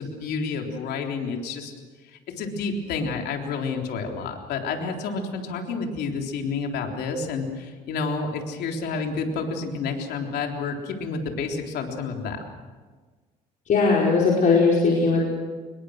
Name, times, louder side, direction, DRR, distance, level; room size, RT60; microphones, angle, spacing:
voice 1, 0.0-1.7 2.1-12.4, left 4 dB, 75° left, 2 dB, 3.7 m, -29 dB
voice 2, 13.7-15.2, left 4 dB, 50° left, -3 dB, 5.0 m, -19 dB
26.0 x 21.5 x 6.6 m, 1.4 s
cardioid pair, 110°, 17 cm